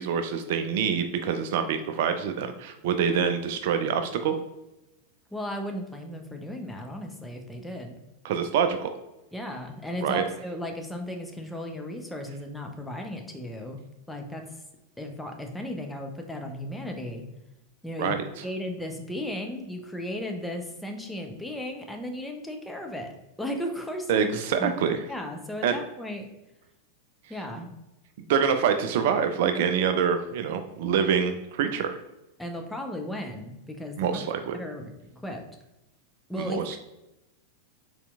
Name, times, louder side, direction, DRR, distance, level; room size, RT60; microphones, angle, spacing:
voice 1, 0.0-4.3 8.2-8.9 10.0-10.2 18.0-18.4 24.1-25.0 25.6-25.8 28.3-32.0 34.0-34.6 36.5-36.8, right 7 dB, 50° right, 8 dB, 0.3 m, -26 dB
voice 2, 5.3-7.9 9.3-13.8 14.1-14.4 15.0-17.3 17.8-23.1 23.4-24.2 24.6-26.3 27.3-27.8 32.4-34.2 34.5-35.4 36.3-36.6, left 1 dB, 5° left, 3 dB, 0.6 m, -35 dB
4.2 x 4.1 x 2.3 m, 0.94 s
figure-of-eight pair, 90°, 0 cm